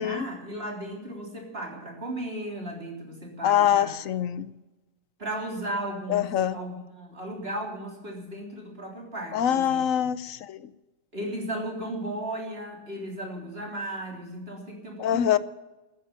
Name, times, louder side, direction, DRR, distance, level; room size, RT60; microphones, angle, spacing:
voice 1, 0.0-3.9 5.2-10.1 11.1-15.4, right 1 dB, 45° right, 0 dB, 3.8 m, -35 dB
voice 2, 3.4-4.5 6.1-6.6 9.3-10.6 15.0-15.4, left 10 dB, 75° left, 16 dB, 1.1 m, -24 dB
13.5 x 10.5 x 8.8 m, 1.1 s
omnidirectional pair, 1.4 m